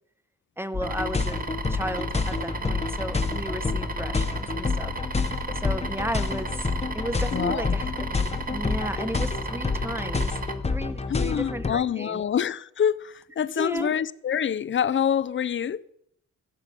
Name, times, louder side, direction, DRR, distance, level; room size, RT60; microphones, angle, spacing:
voice 1, 0.6-5.0 5.6-6.7 6.9-10.4 10.7-12.2 13.5-13.9, right 1 dB, 5° right, 0.8 m, -34 dB
sound 1, 0.7-11.7, left 4 dB, 20° left, 1.0 m, -28 dB
sound 2, 0.8-10.6, right 3 dB, 25° right, 1.1 m, -35 dB
voice 2, 7.3-7.7 11.1-15.8, left 8 dB, 40° left, 0.5 m, -26 dB
16.0 x 7.5 x 6.8 m
wide cardioid pair, 150°, 31 cm